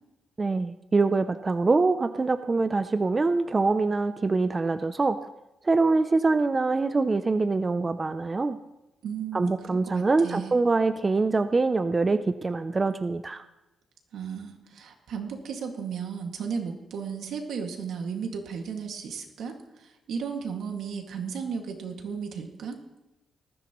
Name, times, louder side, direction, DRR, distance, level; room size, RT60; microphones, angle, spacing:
voice 1, 0.4-5.2 5.6-8.6 9.3-13.4, right 3 dB, 25° right, 10 dB, 0.4 m, -24 dB
voice 2, 9.0-9.6 9.8-10.5 14.1-22.8, right 6 dB, 85° right, 3 dB, 2.0 m, -34 dB
19.5 x 14.5 x 3.0 m, 0.94 s
wide cardioid pair, 145°, 0 cm